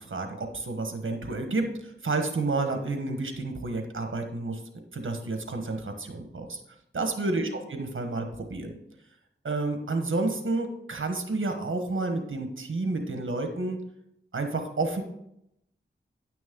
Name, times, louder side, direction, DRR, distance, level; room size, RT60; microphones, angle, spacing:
voice 1, 0.0-4.6 4.9-6.6 6.9-8.8 9.4-13.8 14.3-15.0, right 3 dB, 85° right, 5 dB, 1.2 m, -30 dB
9.8 x 6.2 x 3.7 m, 0.77 s
cardioid pair, 40°, 20 cm